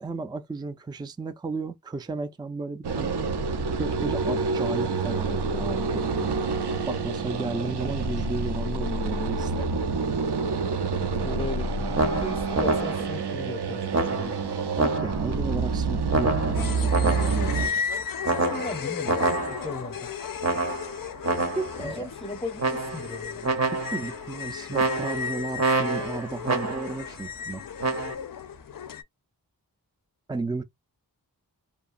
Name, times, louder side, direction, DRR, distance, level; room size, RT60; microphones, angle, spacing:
voice 1, 0.0-3.2 3.7-6.3 6.9-9.7 14.8-17.8 21.5-22.1 23.9-27.6 30.3-30.6, right 3 dB, 10° right, 0.4 m, -33 dB
sound 1, 2.8-17.7, right 4 dB, 75° right, 0.6 m, -28 dB
voice 2, 11.2-13.8 14.1-14.3 18.3-20.1 21.8-23.7, left 2 dB, 15° left, 0.8 m, -37 dB
sound 2, 11.9-13.2 13.9-15.4 16.1-17.6 18.2-19.8 20.4-21.8 22.6-23.2 23.4-24.2 24.7-27.0 27.8-28.1, right 3 dB, 40° right, 0.7 m, -27 dB
sound 3, 16.5-29.0, left 7 dB, 55° left, 0.5 m, -35 dB
2.8 x 2.3 x 2.4 m
wide cardioid pair, 40°, 40 cm